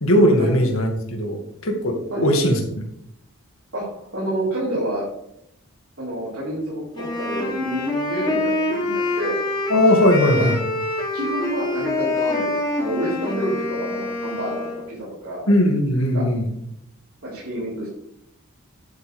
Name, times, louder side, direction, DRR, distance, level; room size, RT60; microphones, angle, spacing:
voice 1, 0.0-2.8 9.7-10.6 15.5-16.5, left 1 dB, 70° left, 3 dB, 2.2 m, -19 dB
voice 2, 3.7-5.1 6.0-9.4 10.3-10.4 11.1-15.5 16.1-16.2 17.2-17.9, right 1 dB, 65° right, -9 dB, 4.4 m, -28 dB
Wind instrument woodwind instrument, 6.9-14.9, left 2 dB, 20° left, 2.8 m, -25 dB
11.5 x 8.4 x 3.5 m, 0.76 s
head